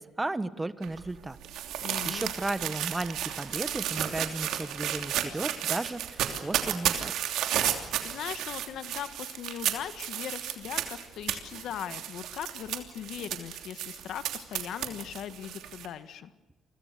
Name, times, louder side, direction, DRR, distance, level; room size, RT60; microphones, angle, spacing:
voice 1, 0.0-1.4 1.7-7.2, right 2 dB, 15° right, 14 dB, 1.4 m, -35 dB
sound 1, 0.8-15.9, right 10 dB, 85° right, 3.0 m, -33 dB
voice 2, 1.8-2.3 8.0-16.3, left 10 dB, 75° left, 12 dB, 1.7 m, -39 dB
29.5 x 24.0 x 6.9 m, 1.1 s
cardioid pair, 90°, 0 cm